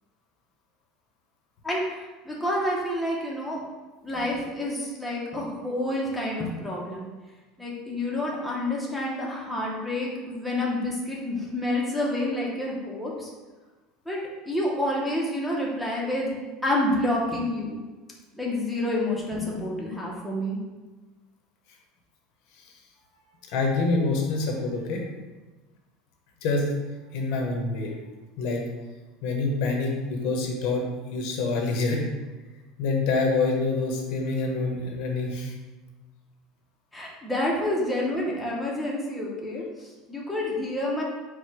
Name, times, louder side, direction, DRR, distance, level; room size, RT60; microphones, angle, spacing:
voice 1, 1.6-3.6 4.0-7.1 7.6-13.3 14.1-14.2 14.4-16.4 16.6-17.8 18.3-20.6 36.9-41.0, left 1 dB, ahead, -5 dB, 0.6 m, -28 dB
voice 2, 23.5-25.0 26.4-26.7 27.1-27.9 28.4-28.6 29.2-32.0 32.8-35.5, left 3 dB, 60° left, 1 dB, 0.8 m, -26 dB
4.5 x 2.1 x 4.6 m, 1.2 s
cardioid pair, 170°, 0 cm